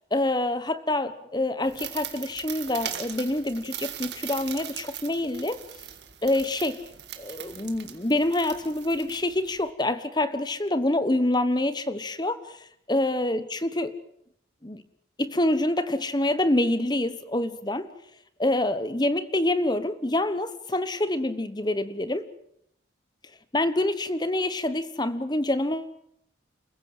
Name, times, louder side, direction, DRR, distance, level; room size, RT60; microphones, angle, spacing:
voice 1, 0.1-5.6 6.2-6.8 7.2-13.9 14.6-14.8 15.2-17.9 18.4-22.3 23.5-25.9, left 1 dB, 20° left, 13 dB, 1.1 m, -26 dB
sound 1, 1.6-9.7, right 10 dB, 60° right, 2.3 m, -39 dB
28.5 x 15.5 x 7.8 m, 0.73 s
head